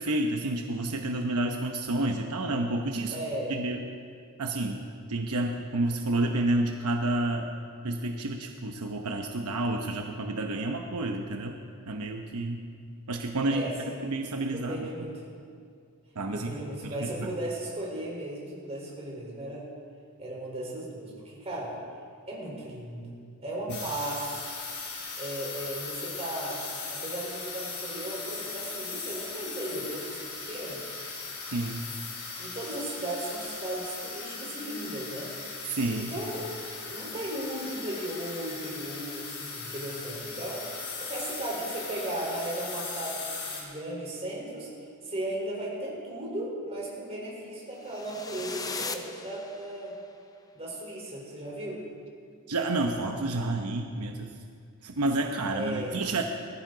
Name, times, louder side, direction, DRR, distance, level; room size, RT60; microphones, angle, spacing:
voice 1, 0.0-3.1 3.5-3.8 4.4-7.5 7.8-11.6 11.9-12.6 13.1-13.6 14.0-14.8 16.2-16.5 16.8-17.3 23.7-23.8 31.5-31.9 35.7-36.1 52.5-54.3 54.8-56.2, right 2 dB, 80° right, 3 dB, 0.9 m, -30 dB
voice 2, 3.1-3.6 13.5-14.0 14.5-15.2 16.3-19.6 20.2-21.8 22.3-24.4 25.2-26.6 26.9-30.8 32.4-35.3 36.0-36.5 36.8-44.7 45.0-49.9 50.5-51.8 55.5-56.0, right 1 dB, 30° right, -4 dB, 4.2 m, -36 dB
sound 1, 23.7-43.6, left 4 dB, 85° left, 3.8 m, -38 dB
sound 2, 47.8-50.0, left 4 dB, 15° left, 0.7 m, -38 dB
19.5 x 14.5 x 4.0 m, 2.2 s
head